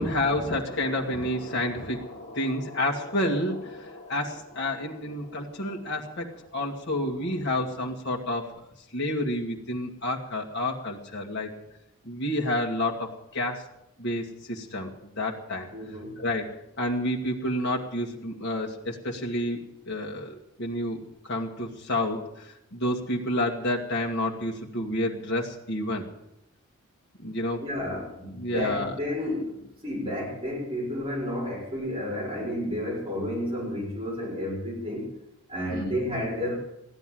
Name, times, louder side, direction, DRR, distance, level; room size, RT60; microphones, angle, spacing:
voice 1, 0.0-8.5 8.9-11.5 12.0-13.6 14.0-15.7 16.2-16.5 16.8-19.6 19.9-26.1 27.2-27.6 28.3-28.9 35.7-36.0, left 1 dB, 55° left, -1 dB, 2.0 m, -29 dB
voice 2, 15.7-16.2 27.6-35.1 35.5-36.5, left 1 dB, 25° right, -4 dB, 4.7 m, -31 dB
15.5 x 10.5 x 7.7 m, 0.82 s
head